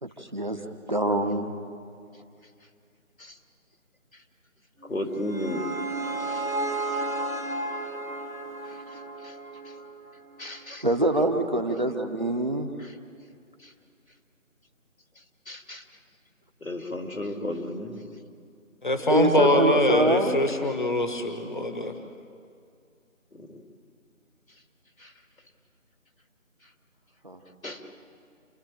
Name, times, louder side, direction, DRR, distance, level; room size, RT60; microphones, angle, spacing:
voice 1, 0.0-0.6 0.9-1.5 10.4-10.5 10.8-12.7 19.1-20.3 27.2-27.4, right 1 dB, 35° right, 5 dB, 1.2 m, -24 dB
voice 2, 4.8-5.7 6.2-6.4 6.9-7.0 8.7-9.3 10.4-10.9 12.8-12.9 13.6-13.7 15.5-15.8 16.6-18.1 23.3-23.6 25.0-25.1 27.6-27.8, left 1 dB, 80° left, 4 dB, 3.0 m, -35 dB
sound 1, 4.9-10.1, right 2 dB, 90° right, 2.6 m, -32 dB
voice 3, 18.8-21.9, left 1 dB, 35° left, 6 dB, 1.3 m, -23 dB
28.5 x 13.5 x 9.0 m, 2.4 s
figure-of-eight pair, 170°, 41 cm